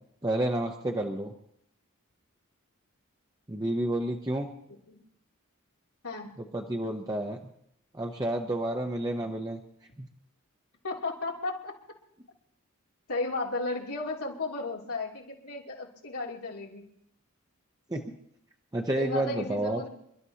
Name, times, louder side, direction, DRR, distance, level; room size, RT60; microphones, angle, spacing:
voice 1, 0.2-1.3 3.5-4.5 6.5-7.4 7.9-9.6 10.0-10.1 17.9-18.0 18.7-19.8, right 1 dB, 15° right, 2 dB, 0.8 m, -30 dB
voice 2, 10.8-11.7 13.1-16.8 19.0-19.9, left 2 dB, 90° left, -3 dB, 3.0 m, -34 dB
28.0 x 12.5 x 2.9 m, 0.72 s
head